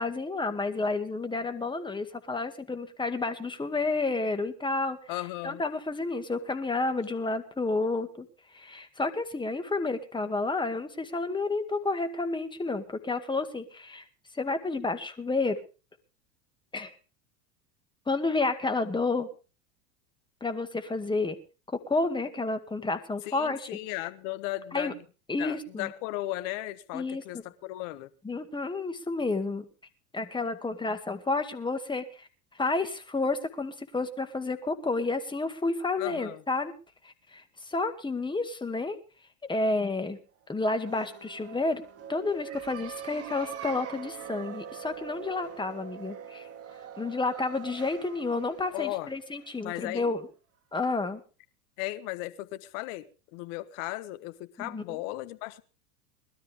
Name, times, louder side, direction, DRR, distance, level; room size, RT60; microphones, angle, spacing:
voice 1, 0.0-5.0 5.4-8.3 8.5-14.0 14.4-15.6 16.7-16.9 18.1-19.3 20.4-21.4 21.9-23.8 24.7-24.9 25.3-25.9 26.9-27.2 28.2-29.7 30.1-32.3 32.5-36.7 37.0-39.0 39.5-40.2 40.5-41.8 42.1-46.5 47.0-50.3 50.7-51.2 54.6-55.0, left 3 dB, 10° left, 2.0 m, -30 dB
voice 2, 5.1-5.6 23.2-25.0 25.4-28.1 36.0-36.4 48.7-49.1 49.6-50.1 51.8-55.6, left 17 dB, 60° left, 1.4 m, -36 dB
sound 1, 40.6-50.2, right 9 dB, 35° right, 2.3 m, -43 dB
21.0 x 12.5 x 3.6 m
hypercardioid pair, 100°, 42 cm